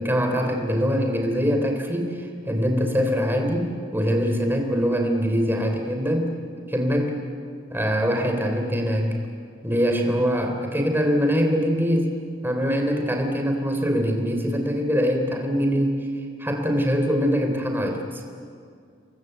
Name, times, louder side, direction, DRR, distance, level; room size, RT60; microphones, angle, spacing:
voice 1, 0.0-6.3 6.7-7.2 7.7-9.1 9.6-12.1 12.4-16.0 16.4-18.2, equal, 10° right, 3 dB, 3.6 m, -23 dB
28.5 x 22.5 x 8.1 m, 2.2 s
head